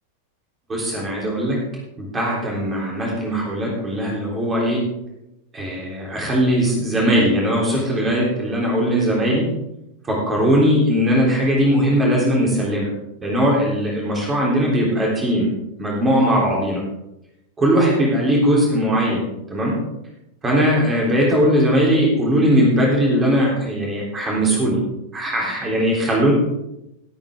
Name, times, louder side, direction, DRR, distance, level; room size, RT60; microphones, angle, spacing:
voice 1, 0.7-1.6 2.0-4.8 5.5-9.5 10.0-12.9 13.2-15.5 15.8-16.8 17.6-19.8 20.4-24.8 25.1-26.3, equal, 20° right, -3 dB, 3.6 m, -19 dB
17.5 x 8.6 x 3.8 m, 0.88 s
figure-of-eight pair, 90°, 0 cm